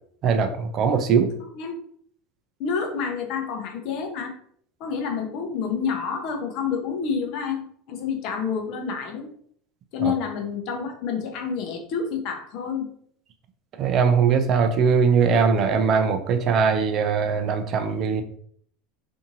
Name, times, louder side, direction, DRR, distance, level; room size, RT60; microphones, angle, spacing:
voice 1, 0.2-1.3 10.0-10.1 13.8-18.2, right 6 dB, 45° right, 7 dB, 0.4 m, -21 dB
voice 2, 2.6-4.3 4.8-9.3 9.9-12.9, left 6 dB, 60° left, 3 dB, 0.6 m, -28 dB
2.6 x 2.6 x 2.7 m, 0.63 s
hypercardioid pair, 80°, 0 cm